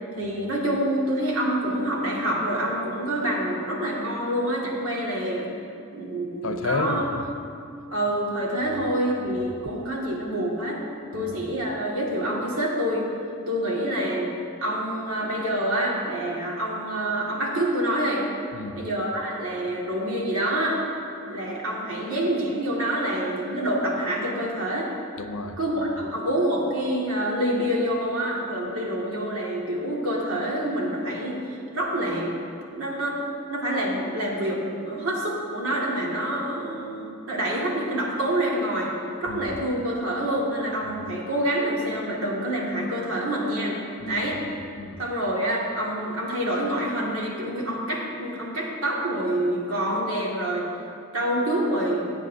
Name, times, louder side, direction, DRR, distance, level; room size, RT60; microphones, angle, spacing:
voice 1, 0.1-5.5 5.9-7.1 7.9-10.8 11.1-13.1 13.5-14.3 14.6-18.3 18.7-20.8 21.3-24.9 25.6-31.4 31.7-32.3 32.7-33.2 33.5-38.9 39.2-43.8 44.1-44.4 45.0-50.7 51.1-52.1, right 1 dB, 75° right, -3 dB, 2.1 m, -27 dB
voice 2, 6.4-7.0 8.6-8.8 9.3-9.4 11.1-11.3 18.5-18.8 25.2-25.6 39.3-39.4 40.9-41.0 44.0-45.0, left 3 dB, 70° left, 7 dB, 0.7 m, -32 dB
17.5 x 8.1 x 2.7 m, 2.6 s
head